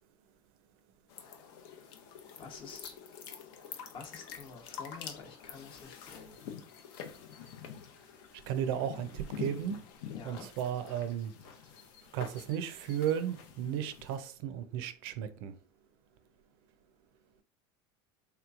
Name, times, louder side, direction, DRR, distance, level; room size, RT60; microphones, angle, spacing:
sound 1, 1.1-14.2, left 8 dB, 70° left, 0.7 m, -47 dB
voice 1, 2.4-2.9 3.9-6.4 10.1-10.5, left 5 dB, 45° left, 0.9 m, -48 dB
voice 2, 8.5-9.8 10.2-11.3 12.1-15.5, right 9 dB, 75° right, 0.5 m, -34 dB
3.4 x 3.0 x 2.4 m
supercardioid pair, 120°, 12 cm